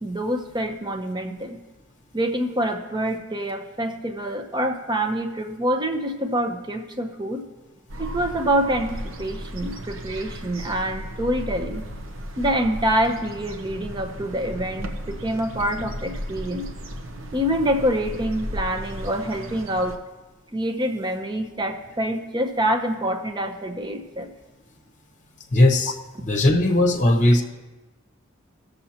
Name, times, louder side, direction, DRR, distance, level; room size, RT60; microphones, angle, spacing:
voice 1, 0.0-1.6 2.1-7.4 8.0-11.9 12.4-16.7 17.3-19.9 20.5-24.3, right 1 dB, 20° right, 6 dB, 0.7 m, -26 dB
sound 1, 7.9-20.0, equal, 70° right, 0.8 m, -35 dB
voice 2, 25.5-25.9 26.2-27.4, left 1 dB, 40° left, 4 dB, 0.9 m, -18 dB
18.0 x 6.8 x 2.9 m, 1.1 s
head